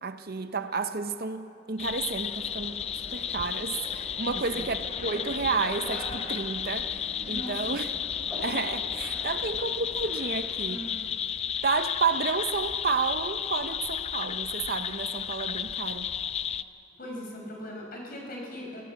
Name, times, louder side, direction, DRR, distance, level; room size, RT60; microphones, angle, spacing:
voice 1, 0.0-8.0 8.4-11.1 11.6-16.1, right 4 dB, 50° right, 10 dB, 0.7 m, -31 dB
sound 1, 1.8-16.6, left 8 dB, 30° left, 0.4 m, -33 dB
sound 2, 2.2-10.6, equal, ahead, 7.2 m, -44 dB
voice 2, 4.3-4.6 7.3-7.5 10.6-11.0 17.0-18.8, left 1 dB, 45° left, -1 dB, 5.2 m, -39 dB
23.0 x 16.5 x 8.2 m, 2.9 s
head